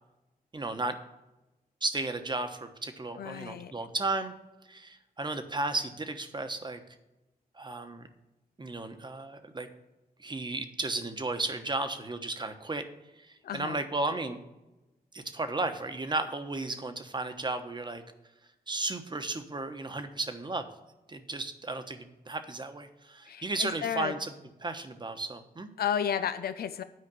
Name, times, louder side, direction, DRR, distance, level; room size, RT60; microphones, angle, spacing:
voice 1, 0.5-1.0 1.8-4.3 4.7-6.8 7.5-8.1 8.6-9.7 10.2-12.9 13.2-14.4 15.1-18.0 18.7-20.7 21.1-24.3 24.6-25.7, right 2 dB, 30° right, 8 dB, 1.1 m, -34 dB
voice 2, 3.2-3.7 13.4-13.8 23.3-24.1 25.8-26.8, left 8 dB, 90° left, 11 dB, 0.5 m, -32 dB
9.6 x 5.1 x 7.3 m, 1.0 s
wide cardioid pair, 90°, 16 cm